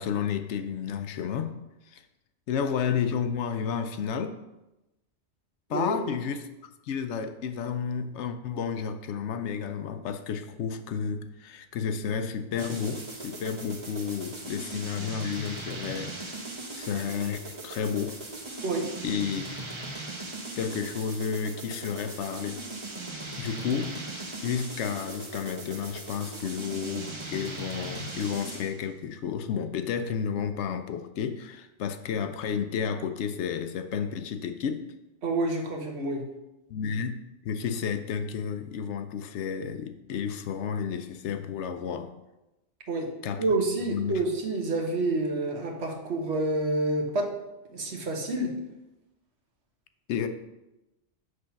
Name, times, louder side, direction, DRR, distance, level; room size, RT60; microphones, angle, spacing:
voice 1, 0.0-1.6 1.9-2.0 2.5-4.4 5.7-6.5 6.8-16.4 16.7-18.2 19.0-19.5 20.6-22.6 23.4-24.1 24.4-34.9 36.7-42.1 43.2-43.4 43.8-44.2 50.1-50.3, left 7 dB, 80° left, 8 dB, 0.9 m, -31 dB
sound 1, 12.6-28.8, right 2 dB, 30° right, 0.8 m, -39 dB
voice 2, 35.2-36.2 42.9-43.1 43.4-47.3 47.7-48.5, right 2 dB, 65° right, 1 dB, 1.4 m, -28 dB
7.8 x 3.6 x 5.7 m, 0.98 s
omnidirectional pair, 1.2 m